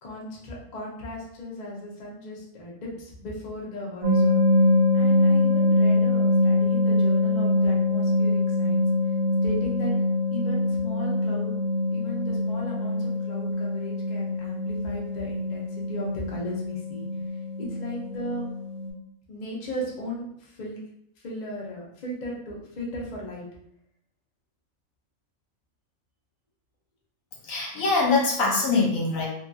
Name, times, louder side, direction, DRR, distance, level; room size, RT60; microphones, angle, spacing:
voice 1, 0.0-4.4 4.9-8.8 9.4-9.9 10.3-11.6 11.9-17.1 17.6-18.4 19.3-20.8 21.2-23.4, equal, 50° left, -3 dB, 0.5 m, -36 dB
sound 1, 4.0-18.9, left 2 dB, 35° right, 0.9 m, -24 dB
voice 2, 27.5-29.3, left 3 dB, 65° left, -2 dB, 1.1 m, -23 dB
2.8 x 2.6 x 2.3 m, 0.73 s
omnidirectional pair, 1.6 m